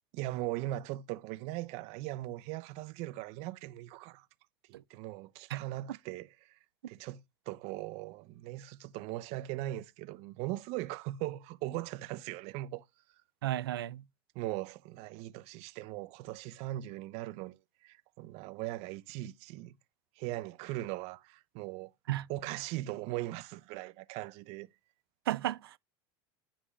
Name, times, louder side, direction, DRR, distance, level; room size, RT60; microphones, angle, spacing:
voice 1, 0.1-4.3 4.9-6.5 6.9-7.2 7.5-12.8 14.3-19.8 20.2-21.9 22.3-24.7, right 16 dB, 60° right, 0.8 m, -39 dB
voice 2, 13.4-14.0 22.1-22.3 25.3-25.8, right 13 dB, 90° right, 0.5 m, -33 dB
10.0 x 5.2 x 3.2 m
hypercardioid pair, 95°, 12 cm